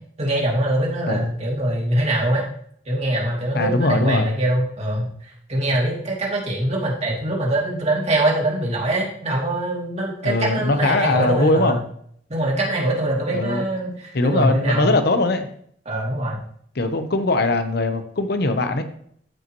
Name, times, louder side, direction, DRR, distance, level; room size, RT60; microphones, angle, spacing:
voice 1, 0.2-2.4 2.9-11.8 12.3-15.0 15.9-16.4, right 1 dB, 40° right, -2 dB, 2.5 m, -23 dB
voice 2, 3.5-4.3 10.2-11.8 13.3-13.6 14.1-15.5 16.7-18.8, left 2 dB, 60° left, 8 dB, 0.9 m, -20 dB
13.0 x 5.5 x 3.0 m, 0.65 s
head